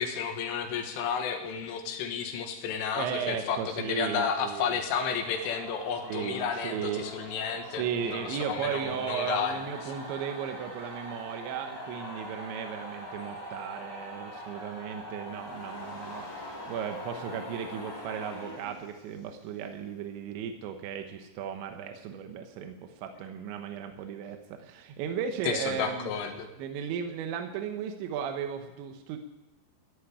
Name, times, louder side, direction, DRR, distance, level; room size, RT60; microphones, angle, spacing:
voice 1, 0.0-9.6 9.8-9.9 25.5-26.5, left 6 dB, 85° left, 4 dB, 4.0 m, -32 dB
voice 2, 2.9-4.7 6.0-7.1 7.7-26.1 26.6-29.2, right 8 dB, 75° right, 5 dB, 3.2 m, -36 dB
sound 1, 5.2-19.3, equal, 15° left, 0.9 m, -42 dB
14.5 x 8.4 x 9.9 m, 0.98 s
omnidirectional pair, 5.6 m